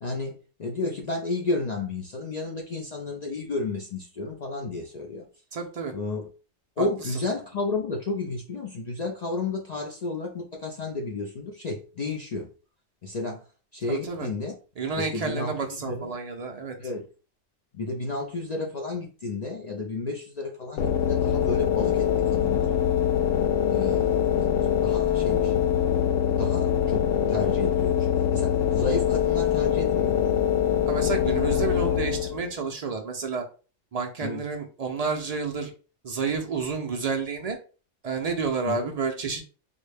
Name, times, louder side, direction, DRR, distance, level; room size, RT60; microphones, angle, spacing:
voice 1, 0.0-5.2 5.9-6.3 6.8-12.5 13.0-13.4 13.7-14.5 15.0-16.1 16.8-17.0 17.7-22.7 23.6-24.2 24.8-25.5 26.3-30.2 34.2-34.4 38.7-38.9, left 3 dB, 65° left, 0.4 m, -32 dB
voice 2, 5.5-5.9 6.8-6.9 13.9-14.3 14.8-16.8 30.9-33.4 33.9-35.7 36.0-37.6 38.0-39.4, right 4 dB, 75° right, 0.3 m, -30 dB
sound 1, 20.8-32.5, left 9 dB, 80° left, 0.9 m, -23 dB
3.9 x 2.1 x 3.2 m
omnidirectional pair, 1.3 m